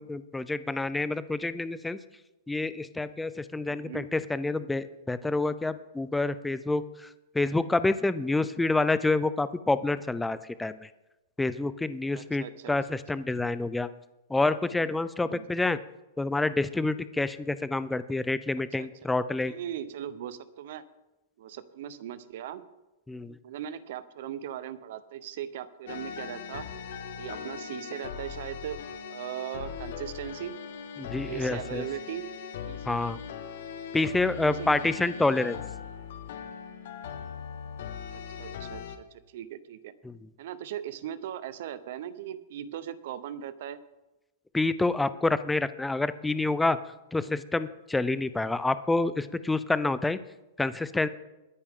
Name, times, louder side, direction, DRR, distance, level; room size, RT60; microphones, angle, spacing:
voice 1, 0.0-2.0 2.5-7.1 7.3-10.9 11.4-13.9 14.3-15.8 16.2-19.5 23.1-23.4 31.0-31.8 32.9-33.2 33.9-35.6 40.0-40.2 44.5-46.8 47.1-50.2 50.6-51.1, left 2 dB, 5° left, 14 dB, 0.4 m, -28 dB
voice 2, 3.7-4.1 12.1-13.0 14.8-14.9 15.2-15.5 18.8-18.9 19.4-20.8 21.4-22.6 23.4-26.7 27.2-28.8 29.1-30.5 31.2-32.3 32.7-33.0 34.4-34.8 38.1-39.9 40.4-43.8, right 10 dB, 55° right, 15 dB, 0.9 m, -39 dB
sound 1, 25.9-39.0, left 7 dB, 60° left, 1.4 m, -40 dB
21.5 x 9.8 x 3.7 m, 1.0 s
supercardioid pair, 160°, 0 cm